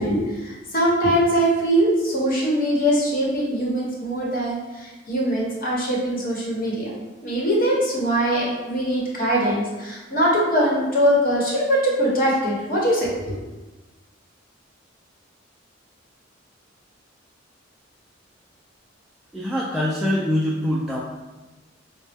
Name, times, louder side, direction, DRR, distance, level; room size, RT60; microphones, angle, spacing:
voice 1, 0.0-6.9 7.2-13.3, equal, 50° left, -4 dB, 1.0 m, -22 dB
voice 2, 19.3-21.0, left 1 dB, ahead, -7 dB, 0.3 m, -23 dB
3.9 x 2.1 x 3.4 m, 1.2 s
head